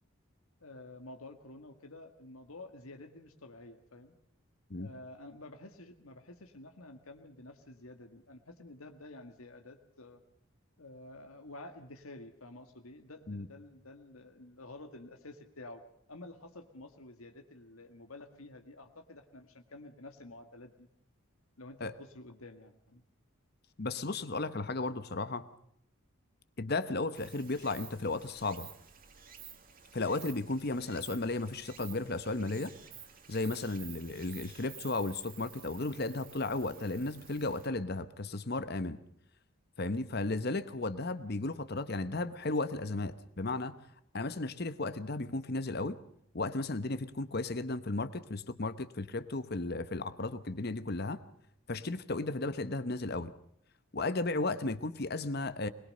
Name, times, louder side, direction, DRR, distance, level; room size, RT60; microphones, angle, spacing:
voice 1, 0.6-4.2 4.8-10.2 10.8-15.8 16.1-20.9 21.6-23.0, left 2 dB, 85° left, 6 dB, 1.9 m, -50 dB
voice 2, 23.8-25.4 26.6-28.7 29.9-32.7 33.3-39.0 39.8-43.8 44.1-46.0 46.3-51.2 51.7-53.3 53.9-55.7, left 2 dB, 45° left, 13 dB, 1.0 m, -34 dB
Stream, 27.1-37.7, right 9 dB, 40° right, 2.1 m, -52 dB
22.0 x 21.0 x 6.6 m, 0.68 s
head